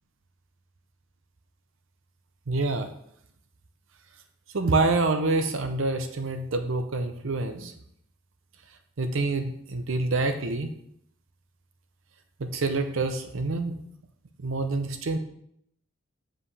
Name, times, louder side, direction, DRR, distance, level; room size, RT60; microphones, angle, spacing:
voice 1, 2.5-2.9 4.5-7.7 9.0-10.7 12.4-13.8 14.4-15.2, right 3 dB, 65° right, 7 dB, 0.6 m, -27 dB
7.5 x 5.1 x 3.3 m, 0.70 s
head